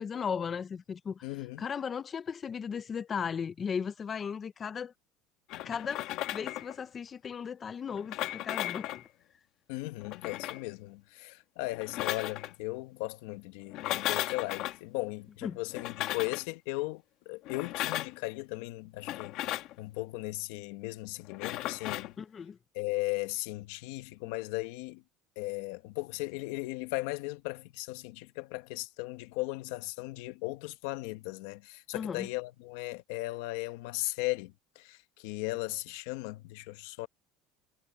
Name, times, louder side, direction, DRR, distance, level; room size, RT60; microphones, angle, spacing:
voice 1, 0.0-4.9 5.6-9.0 15.4-15.6 22.2-22.6 31.9-32.3, left 6 dB, 25° left, 0.5 m, -36 dB
voice 2, 1.2-1.7 9.7-19.3 19.8-22.1 22.7-25.0 25.4-35.0 35.2-37.1, left 21 dB, 85° left, 1.2 m, -37 dB
sound 1, 5.5-6.8 7.9-9.1 10.0-10.7 11.7-12.5 13.7-14.8 15.7-16.4 17.5-18.2 19.0-19.7 21.3-22.1, left 15 dB, 55° left, 1.7 m, -35 dB
cardioid pair, 160°, 0 cm